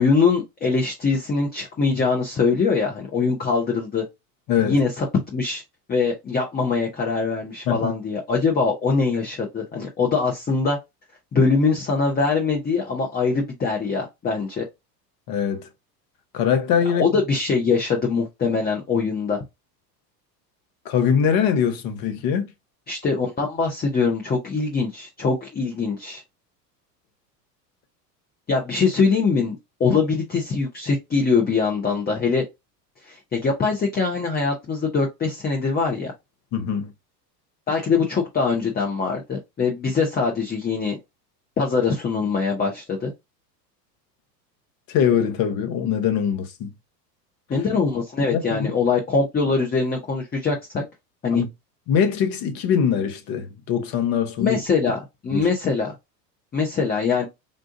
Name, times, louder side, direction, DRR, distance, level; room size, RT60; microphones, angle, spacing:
voice 1, 0.0-4.0 4.6-5.1 5.3-5.6 5.9-10.8 11.3-14.6 17.0-19.4 22.9-26.2 28.5-32.4 33.1-36.1 37.7-41.0 41.6-43.1 47.5-50.8 51.2-51.4 54.4-55.9 56.5-57.3, left 4 dB, 20° left, 0.8 m, -22 dB
voice 2, 15.3-15.7 16.3-17.0 20.8-22.5 36.5-36.9 44.9-46.7 48.3-48.7 51.3-51.5 51.9-54.6 55.3-55.5, left 8 dB, 45° left, 1.0 m, -22 dB
3.8 x 2.5 x 2.5 m
hypercardioid pair, 80°, 49 cm